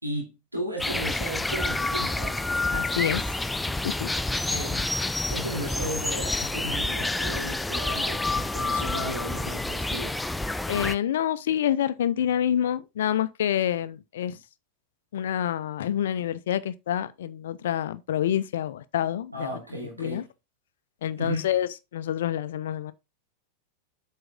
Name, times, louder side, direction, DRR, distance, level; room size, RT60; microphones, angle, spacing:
voice 1, 0.0-2.4 4.5-4.9 5.3-10.2 19.3-20.3 21.2-21.5, right 1 dB, 85° right, 2.7 m, -35 dB
sound 1, 0.8-11.0, left 2 dB, 5° left, 0.5 m, -28 dB
voice 2, 2.7-3.2 3.6-4.1 10.7-14.4 15.1-19.6 20.0-20.2 21.0-22.9, left 10 dB, 60° left, 0.7 m, -27 dB
7.9 x 5.5 x 3.7 m
figure-of-eight pair, 90°, 0 cm